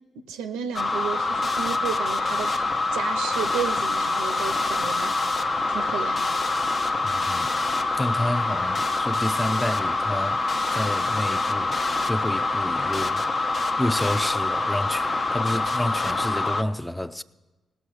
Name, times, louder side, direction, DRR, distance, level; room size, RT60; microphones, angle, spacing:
voice 1, 0.3-2.6 2.9-6.3, right 7 dB, 90° right, 0.6 m, -33 dB
sound 1, 0.7-16.6, left 3 dB, 45° left, 0.7 m, -25 dB
voice 2, 7.0-7.5 8.0-10.4 10.7-11.8 12.0-13.2 13.8-17.2, left 1 dB, 10° left, 0.5 m, -29 dB
18.0 x 6.4 x 6.3 m
hypercardioid pair, 45°, 0 cm